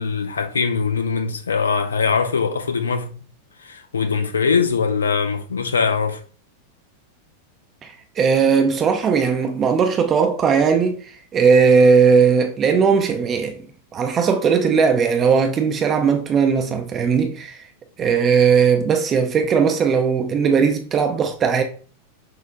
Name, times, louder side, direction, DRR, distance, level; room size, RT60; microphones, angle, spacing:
voice 1, 0.0-3.1 3.6-6.2, left 5 dB, 70° left, 0.5 m, -21 dB
voice 2, 7.8-13.6 13.9-17.6 18.0-21.6, right 6 dB, 25° right, 0.5 m, -18 dB
6.1 x 2.4 x 2.9 m
figure-of-eight pair, 90°, 0 cm